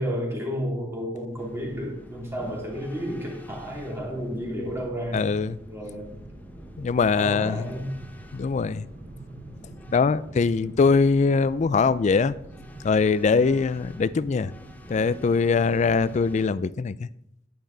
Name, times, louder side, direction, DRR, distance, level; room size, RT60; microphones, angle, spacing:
voice 1, 0.0-5.3 5.7-6.2 7.2-7.9 13.1-13.3, equal, 15° right, 2.7 m, -32 dB
sound 1, 1.4-16.5, equal, 10° left, 0.8 m, -47 dB
sound 2, 1.6-16.3, right 2 dB, 45° right, 0.7 m, -48 dB
voice 2, 5.1-5.6 6.8-7.6 8.3-8.8 9.9-12.3 12.8-14.5 14.9-17.1, left 4 dB, 40° left, 0.3 m, -22 dB
10.5 x 10.5 x 3.9 m
head